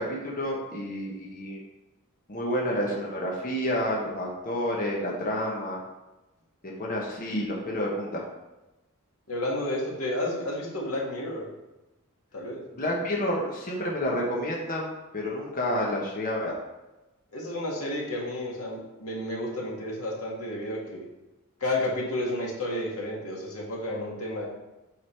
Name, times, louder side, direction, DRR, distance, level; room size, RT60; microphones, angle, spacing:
voice 1, 0.0-1.6 2.3-5.8 6.6-8.2 12.7-14.9 15.1-16.5, left 1 dB, 40° left, -2 dB, 1.2 m, -29 dB
voice 2, 9.3-11.5 12.3-12.6 17.3-21.1 21.6-24.4, left 1 dB, 90° left, -3 dB, 2.0 m, -31 dB
8.0 x 3.9 x 4.5 m, 1.0 s
head